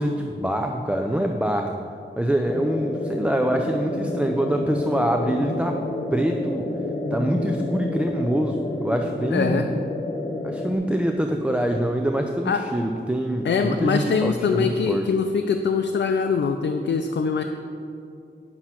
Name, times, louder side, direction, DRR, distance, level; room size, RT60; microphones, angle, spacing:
voice 1, 0.0-1.8 2.2-5.8 6.1-6.7 7.1-9.6 10.4-15.1, right 1 dB, 5° right, 3 dB, 0.4 m, -25 dB
sound 1, 2.4-10.7, left 2 dB, 40° left, 0.9 m, -29 dB
voice 2, 9.3-9.7 12.5-12.6 13.4-17.4, left 5 dB, 75° left, 5 dB, 0.5 m, -23 dB
9.9 x 6.0 x 5.7 m, 2.6 s
wide cardioid pair, 125°, 19 cm